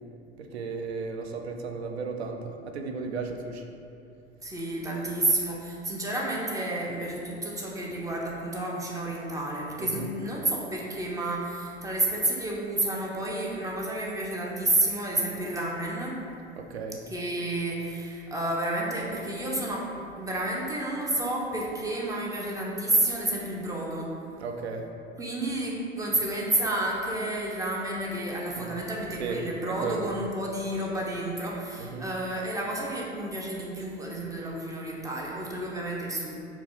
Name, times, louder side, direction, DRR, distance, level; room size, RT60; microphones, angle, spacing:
voice 1, 0.4-3.6 9.8-10.1 16.6-17.0 24.4-24.9 28.5-28.7 29.2-29.4 29.7-30.1 31.8-32.1, right 4 dB, 80° right, 4 dB, 0.5 m, -35 dB
voice 2, 4.4-16.2 17.1-19.9 20.2-24.1 25.2-36.3, right 1 dB, 10° right, -3 dB, 0.6 m, -30 dB
4.4 x 2.3 x 4.0 m, 2.6 s
figure-of-eight pair, 75°, 32 cm